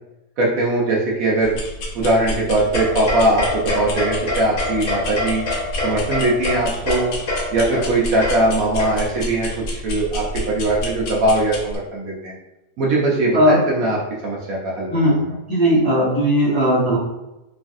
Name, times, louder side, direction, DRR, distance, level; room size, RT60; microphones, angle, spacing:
voice 1, 0.4-1.6 1.9-5.4 5.8-7.1 7.5-12.3 12.8-14.0 14.2-15.2, right 2 dB, 65° right, -4 dB, 0.9 m, -20 dB
sound 1, 1.4-11.8, left 1 dB, 80° left, 1.2 m, -30 dB
radiator hits fast, 2.7-9.3, left 2 dB, 55° left, 1.2 m, -26 dB
voice 2, 15.5-17.0, equal, 20° left, -10 dB, 0.7 m, -17 dB
3.1 x 2.4 x 2.5 m, 0.94 s
omnidirectional pair, 1.8 m